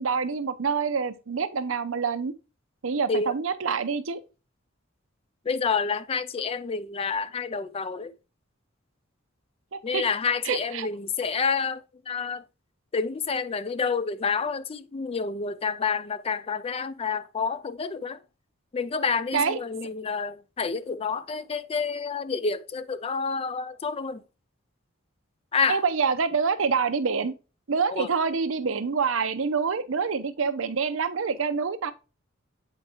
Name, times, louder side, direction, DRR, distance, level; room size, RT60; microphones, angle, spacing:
voice 1, 0.0-2.3 2.8-4.2 9.7-10.0 10.4-10.9 19.3-19.6 25.7-27.3 27.7-31.9, right 5 dB, 75° right, 0.6 m, -26 dB
voice 2, 5.5-8.1 9.8-12.4 12.9-18.2 18.7-24.2 25.5-25.8 27.9-28.1, left 5 dB, 30° left, 0.4 m, -29 dB
8.0 x 4.4 x 2.8 m
head